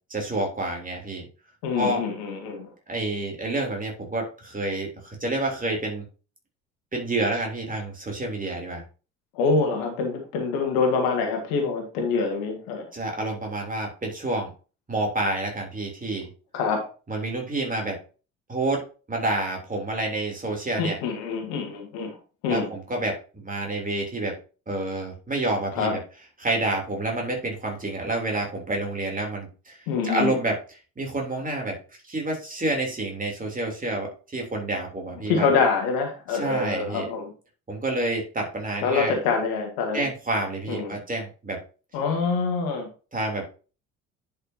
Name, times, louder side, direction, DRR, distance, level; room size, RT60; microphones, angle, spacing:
voice 1, 0.1-1.2 1.8-2.0 2.9-6.0 6.9-8.8 12.9-14.5 14.9-16.3 17.1-18.0 18.5-18.8 19.1-21.0 22.5-24.3 24.7-26.0 26.4-29.8 30.0-31.8 32.1-35.5 36.3-37.1 37.7-39.2 39.9-41.6 43.1-43.4, right 2 dB, 20° right, 3.3 m, -28 dB
voice 2, 1.6-2.7 9.3-12.9 16.5-16.8 20.8-22.2 22.4-22.7 25.7-25.9 29.9-30.3 35.3-37.3 38.8-40.1 40.7-41.0 41.9-42.9, left 4 dB, 60° left, 2.1 m, -25 dB
10.5 x 5.6 x 2.8 m
figure-of-eight pair, 55°, 40 cm